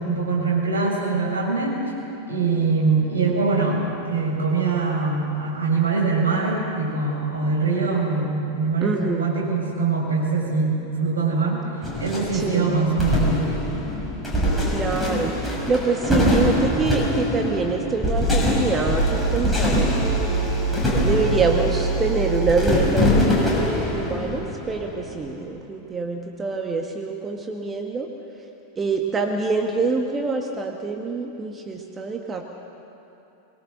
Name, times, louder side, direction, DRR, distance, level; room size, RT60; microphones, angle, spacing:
voice 1, 0.0-1.8 2.3-11.6 12.0-13.5, right 4 dB, 70° right, -2 dB, 6.1 m, -23 dB
voice 2, 8.8-9.3 12.3-12.7 14.6-20.5 21.0-28.1 28.8-32.4, right 4 dB, 20° right, 2 dB, 1.6 m, -25 dB
sound 1, 11.8-25.3, equal, 5° left, 6.4 m, -23 dB
23.0 x 21.0 x 6.6 m, 2.9 s
figure-of-eight pair, 90°, 0 cm